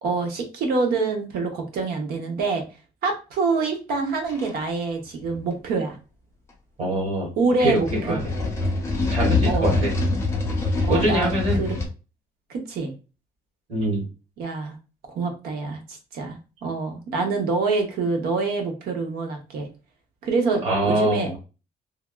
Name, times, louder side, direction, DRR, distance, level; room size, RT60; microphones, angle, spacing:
voice 1, 0.0-2.6 3.0-6.0 7.4-8.2 9.5-9.8 10.8-11.3 11.6-11.8 12.5-12.9 14.4-14.8 15.1-19.7 20.2-21.4, right 4 dB, 75° right, 3 dB, 0.8 m, -26 dB
sound 1, 4.3-4.5 5.2-5.4 7.5-11.9, left 2 dB, 15° left, 0.6 m, -24 dB
voice 2, 6.8-7.3 7.6-8.3 9.1-9.9 10.9-11.6 13.7-14.1 20.6-21.3, right 1 dB, 40° right, -4 dB, 1.4 m, -24 dB
3.3 x 2.3 x 2.3 m, 0.32 s
cardioid pair, 165°, 16 cm